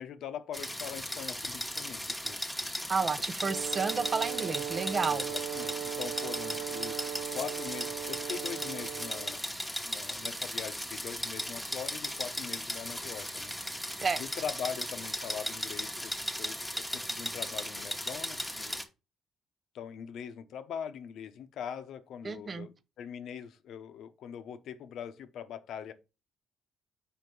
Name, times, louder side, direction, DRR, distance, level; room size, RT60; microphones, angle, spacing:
voice 1, 0.0-2.4 5.1-13.5 14.2-16.1 16.4-18.8 19.7-25.9, left 8 dB, 70° left, 0.8 m, -42 dB
sound 1, 0.5-18.8, equal, ahead, 1.1 m, -37 dB
voice 2, 2.9-5.3 14.0-14.2 22.2-22.7, right 4 dB, 30° right, 0.5 m, -31 dB
Brass instrument, 3.4-9.4, right 11 dB, 85° right, 0.5 m, -38 dB
4.7 x 4.3 x 5.3 m
cardioid pair, 110°, 0 cm